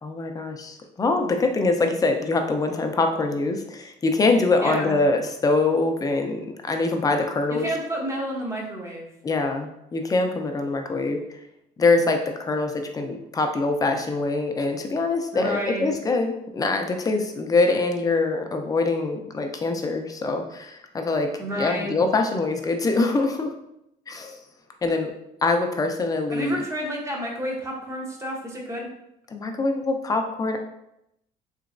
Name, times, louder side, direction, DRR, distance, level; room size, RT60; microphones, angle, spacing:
voice 1, 0.0-7.7 9.2-11.4 11.8-21.3 21.6-23.5 24.1-24.4 24.8-25.1 25.4-26.6 29.3-30.6, left 3 dB, 20° left, 4 dB, 0.4 m, -24 dB
voice 2, 4.6-5.0 7.5-9.1 15.3-15.9 21.4-22.0 26.3-28.9, equal, 15° right, -1 dB, 0.8 m, -30 dB
3.3 x 3.0 x 2.5 m, 0.82 s
cardioid pair, 110°, 17 cm